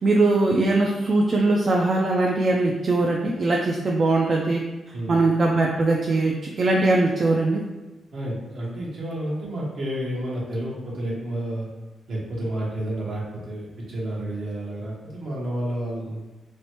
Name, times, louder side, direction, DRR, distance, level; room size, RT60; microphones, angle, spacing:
voice 1, 0.0-4.6 5.1-7.6, right 2 dB, 50° right, -1 dB, 0.3 m, -21 dB
voice 2, 8.1-11.7 12.1-16.2, right 1 dB, 65° right, -4 dB, 1.0 m, -30 dB
3.0 x 2.1 x 2.9 m, 1.1 s
supercardioid pair, 55°, 0 cm